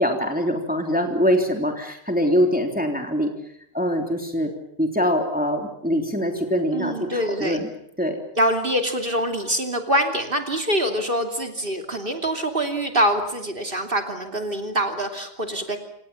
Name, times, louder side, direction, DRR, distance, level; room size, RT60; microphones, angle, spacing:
voice 1, 0.0-3.3 3.7-4.5 4.8-7.7 8.0-8.2, equal, 10° right, 3 dB, 3.4 m, -23 dB
voice 2, 6.7-7.6 8.4-15.8, right 1 dB, 55° right, 4 dB, 3.2 m, -24 dB
28.0 x 27.0 x 7.2 m, 0.72 s
omnidirectional pair, 1.1 m